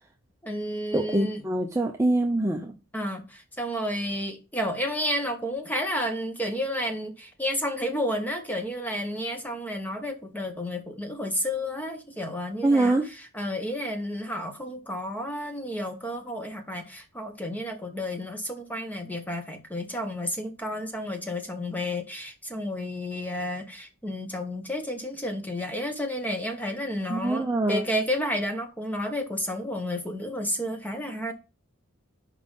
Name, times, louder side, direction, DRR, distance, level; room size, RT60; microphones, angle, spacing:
voice 1, 0.4-1.4 2.9-31.3, equal, 10° left, 1.0 m, -31 dB
voice 2, 0.9-2.7 12.6-13.1 27.1-27.8, right 2 dB, 15° right, 0.5 m, -24 dB
5.4 x 5.1 x 5.4 m
head